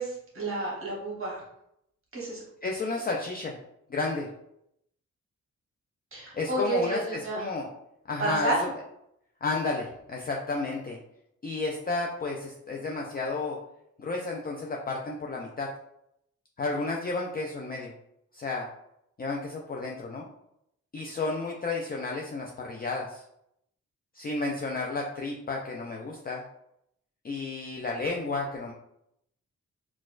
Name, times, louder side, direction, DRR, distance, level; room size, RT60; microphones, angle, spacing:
voice 1, 0.0-1.4 2.1-2.4 6.1-7.4 8.2-8.6, right 2 dB, 45° right, -4 dB, 1.0 m, -30 dB
voice 2, 2.6-3.6 3.9-4.3 6.3-7.7 8.1-8.7 9.4-11.0 11.4-13.6 14.0-15.7 16.6-17.9 18.3-18.7 19.2-20.3 20.9-23.2 24.1-26.4 27.2-28.7, left 3 dB, 30° left, -1 dB, 0.4 m, -32 dB
4.1 x 2.3 x 2.4 m, 0.77 s
cardioid pair, 95°, 30 cm